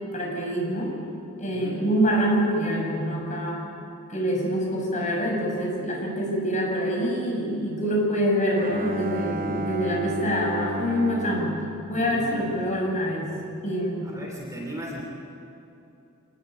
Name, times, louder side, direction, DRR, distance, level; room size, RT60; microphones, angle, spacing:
voice 1, 0.1-0.9 1.4-3.6 4.1-11.6 11.9-13.4 13.6-14.1, equal, 35° left, -1 dB, 6.2 m, -25 dB
voice 2, 1.5-1.8 12.1-12.8 14.0-15.0, equal, 15° right, -1 dB, 2.9 m, -37 dB
Bowed string instrument, 8.5-12.9, right 2 dB, 40° right, 0.9 m, -33 dB
25.0 x 19.5 x 8.8 m, 2.8 s
head